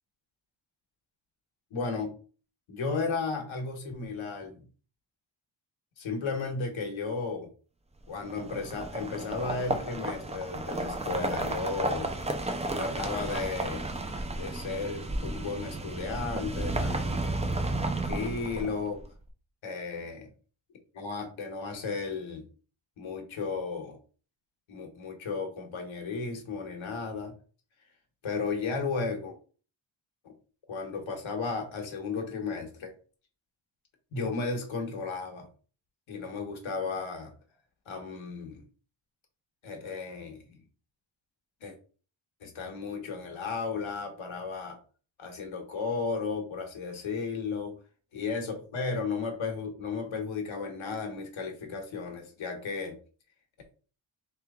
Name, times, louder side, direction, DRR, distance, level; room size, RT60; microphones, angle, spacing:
voice 1, 1.7-2.1 2.7-4.6 6.0-7.5 8.1-12.1 12.7-13.8 14.4-17.0 18.0-19.0 19.6-20.3 20.9-22.5 23.0-24.0 24.7-27.3 28.2-29.4 30.2-30.3 30.7-32.9 34.1-35.5 36.1-37.3 37.9-38.6 39.6-40.6 41.6-41.8 42.4-44.8 45.2-47.7 48.1-53.0, left 4 dB, 70° left, 3 dB, 1.1 m, -34 dB
sound 1, 8.2-19.0, right 2 dB, 15° right, 0.4 m, -33 dB
3.3 x 3.1 x 3.6 m, 0.38 s
wide cardioid pair, 140°, 49 cm